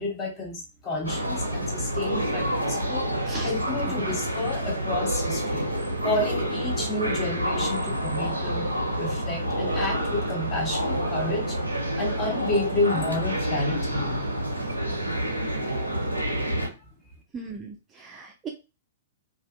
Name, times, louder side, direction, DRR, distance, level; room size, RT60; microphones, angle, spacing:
voice 1, 0.0-3.1 3.4-5.7 6.0-8.7 9.0-11.6 11.9-14.3, left 2 dB, 25° left, 1 dB, 0.9 m, -30 dB
sound 1, 1.0-16.7, right 1 dB, 80° right, 0.6 m, -28 dB
voice 2, 17.3-18.5, right 4 dB, 20° right, 1 dB, 0.5 m, -37 dB
2.5 x 2.4 x 2.3 m, 0.29 s
figure-of-eight pair, 110°, 0 cm